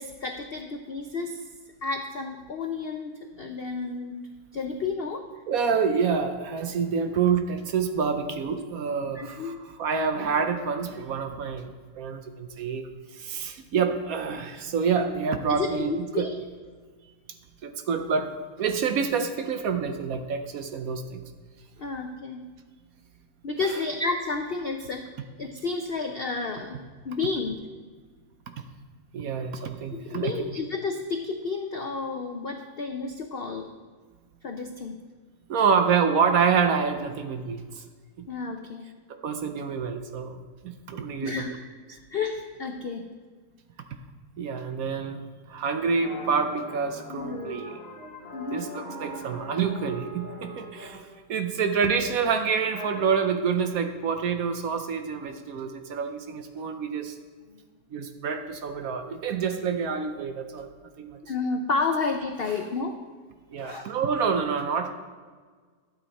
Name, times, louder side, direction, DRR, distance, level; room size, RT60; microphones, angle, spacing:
voice 1, 0.0-1.5 1.8-3.1 3.4-4.1 4.5-5.3 6.9-7.1 9.1-9.5 15.5-16.3 21.8-22.4 23.4-25.1 25.4-27.6 30.1-33.7 34.4-35.0 38.3-38.9 41.2-41.6 41.9-43.0 47.1-47.6 48.3-48.7 57.5-57.6 61.2-63.0 63.5-63.9, left 4 dB, 65° left, 4 dB, 0.5 m, -31 dB
voice 2, 5.5-16.3 17.6-21.2 28.5-28.6 29.1-30.3 35.5-37.8 38.2-38.3 39.1-40.4 40.6-41.5 44.4-47.7 48.5-57.2 57.9-60.7 61.0-61.2 63.5-64.9, right 6 dB, 65° right, 7 dB, 1.0 m, -27 dB
sound 1, 46.0-51.2 51.6-52.2 52.7-53.5, equal, 40° left, 1.4 m, -41 dB
12.0 x 7.8 x 4.1 m, 1.5 s
omnidirectional pair, 1.8 m